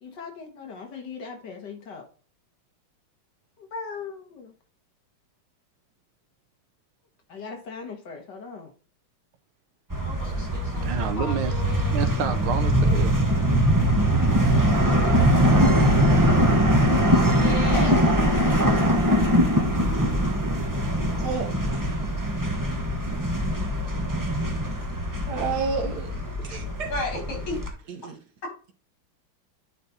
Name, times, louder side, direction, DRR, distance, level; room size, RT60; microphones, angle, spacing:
voice 1, 0.0-2.0 3.7-4.5 7.3-8.7, left 5 dB, 60° left, 2.1 m, -39 dB
sound 1, 9.9-27.7, equal, 15° right, 0.7 m, -22 dB
voice 2, 10.0-12.0 16.8-16.9 17.2-18.2 26.5-26.6 26.9-27.6, left 2 dB, 80° left, 4.7 m, -34 dB
voice 3, 10.8-11.6 11.9-13.2, right 7 dB, 85° right, 1.8 m, -29 dB
voice 4, 21.2-21.8 23.2-23.3 25.3-26.1 26.4-26.9 27.9-28.2, right 5 dB, 60° right, 1.5 m, -31 dB
10.0 x 4.3 x 4.1 m
omnidirectional pair, 2.2 m